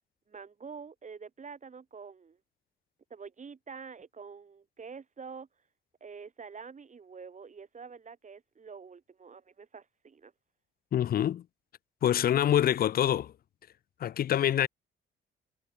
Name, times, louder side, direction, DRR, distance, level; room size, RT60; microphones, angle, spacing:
voice 1, 0.3-2.4 3.1-5.5 6.0-10.3, right 5 dB, 40° right, 5.0 m, -46 dB
voice 2, 10.9-11.4 12.0-13.3 14.0-14.7, left 10 dB, 50° left, 0.5 m, -25 dB
cardioid pair, 90°, 20 cm